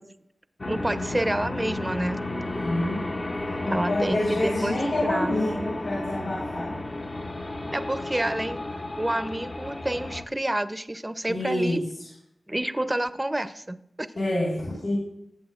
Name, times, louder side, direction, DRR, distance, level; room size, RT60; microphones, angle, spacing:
sound 1, 0.6-10.2, left 2 dB, 40° left, 0.8 m, -32 dB
voice 1, 0.7-2.2 3.7-4.7 5.0-5.7 6.6-6.7 7.7-8.6 9.0-11.8 12.5-14.1, right 1 dB, 15° right, 12 dB, 0.6 m, -29 dB
voice 2, 2.3-3.1 3.6-6.7 11.3-11.9 14.1-15.0, left 1 dB, 75° left, -7 dB, 4.1 m, -27 dB
17.5 x 7.9 x 2.5 m, 0.76 s
cardioid pair, 55°, 0 cm